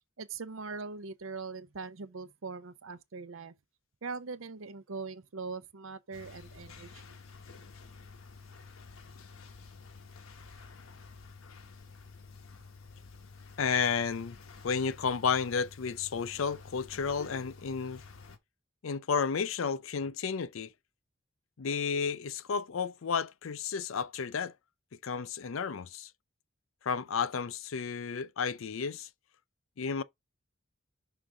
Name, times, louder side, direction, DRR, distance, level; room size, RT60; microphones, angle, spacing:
voice 1, 0.2-3.5 4.0-7.2, right 4 dB, 70° right, 0.7 m, -41 dB
sound 1, 6.1-18.4, left 4 dB, 85° left, 1.1 m, -51 dB
voice 2, 13.6-14.4 14.6-18.0 18.8-20.7 21.6-24.5 25.0-26.1 26.8-29.1 29.8-30.0, left 6 dB, 70° left, 0.5 m, -32 dB
5.9 x 3.7 x 4.8 m
head